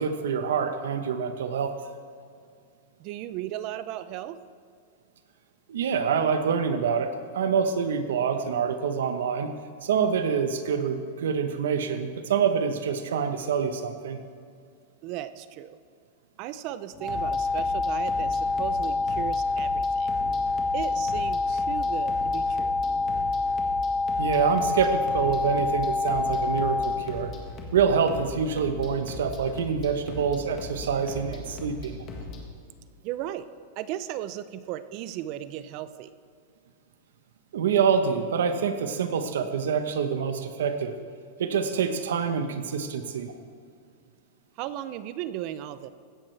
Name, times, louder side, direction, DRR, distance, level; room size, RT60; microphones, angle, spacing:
voice 1, 0.0-1.7 5.7-9.5 9.8-14.2 24.2-27.3 27.7-32.0 37.5-40.9 41.4-43.3, right 6 dB, 90° right, 8 dB, 0.9 m, -26 dB
voice 2, 3.0-4.4 15.0-15.8 16.4-20.1 20.7-22.7 33.0-33.5 33.8-36.1 44.6-45.9, right 12 dB, 40° right, 14 dB, 0.4 m, -36 dB
sound 1, 16.9-32.4, left 3 dB, 30° left, 1.6 m, -39 dB
sound 2, 17.0-27.0, left 3 dB, 15° right, 1.5 m, -27 dB
15.5 x 11.0 x 3.3 m, 2.2 s
supercardioid pair, 160°, 0 cm